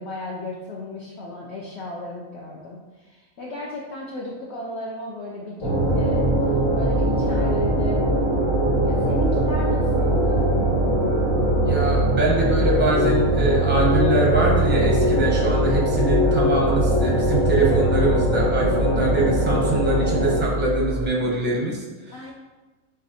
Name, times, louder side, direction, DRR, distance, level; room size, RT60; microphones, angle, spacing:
voice 1, 0.0-6.4 6.7-8.1 8.8-10.5 22.1-22.3, left 1 dB, 60° left, -3 dB, 0.8 m, -35 dB
sound 1, 5.6-20.4, right 1 dB, 80° left, 1.7 m, -21 dB
sound 2, 5.7-21.1, right 1 dB, 65° right, 0.7 m, -28 dB
voice 2, 11.6-22.2, right 2 dB, 10° right, -3 dB, 0.7 m, -24 dB
7.3 x 2.6 x 2.7 m, 1.2 s
omnidirectional pair, 1.5 m